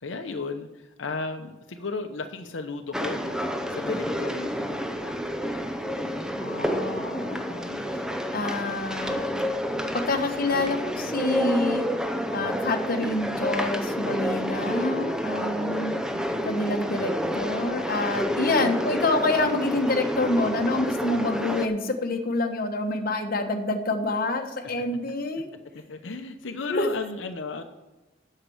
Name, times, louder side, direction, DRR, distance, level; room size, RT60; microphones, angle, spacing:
voice 1, 0.0-3.4 3.7-5.2 25.7-27.6, left 4 dB, 85° left, 6 dB, 0.8 m, -34 dB
sound 1, 2.9-21.7, equal, 5° right, 0.8 m, -29 dB
voice 2, 6.4-8.0 8.3-9.3 10.1-11.8 12.3-15.9 16.4-25.5 26.7-26.9, left 2 dB, 50° left, 5 dB, 1.1 m, -27 dB
8.0 x 6.7 x 7.7 m, 1.1 s
head